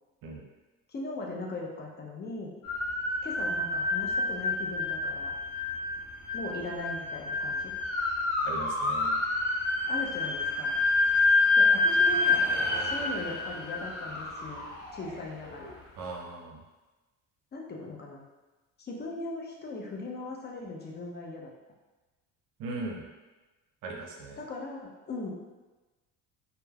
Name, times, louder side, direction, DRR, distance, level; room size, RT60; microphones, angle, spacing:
voice 1, 0.9-2.5 3.2-5.3 6.3-7.7 9.9-10.8 11.6-12.4 12.8-14.6 14.9-15.7 17.5-18.2 18.8-21.5 24.4-25.3, left 2 dB, 30° left, -1 dB, 0.5 m, -39 dB
sound 1, 2.6-15.7, left 3 dB, 80° left, 0.8 m, -28 dB
voice 2, 8.4-9.2 16.0-16.6 22.6-23.0 23.8-24.4, right 3 dB, 65° right, 0 dB, 0.6 m, -38 dB
3.1 x 2.1 x 2.2 m, 1.2 s
supercardioid pair, 80°, 36 cm